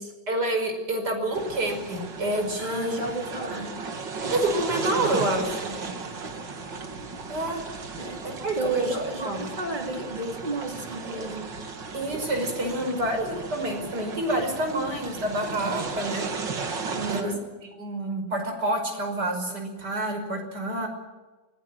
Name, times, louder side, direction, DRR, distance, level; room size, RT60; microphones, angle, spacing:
voice 1, 0.3-3.0 4.3-5.8 7.3-7.6 8.2-9.5 11.9-16.3 17.1-17.3 17.8-20.9, right 1 dB, 65° right, 4 dB, 6.1 m, -28 dB
sound 1, 1.3-17.2, right 4 dB, 80° right, 2.8 m, -35 dB
voice 2, 2.6-3.8 8.0-8.2 8.6-11.6 16.9-17.4, right 2 dB, 25° right, 2 dB, 3.8 m, -31 dB
24.5 x 19.0 x 7.8 m, 1.2 s
omnidirectional pair, 1.9 m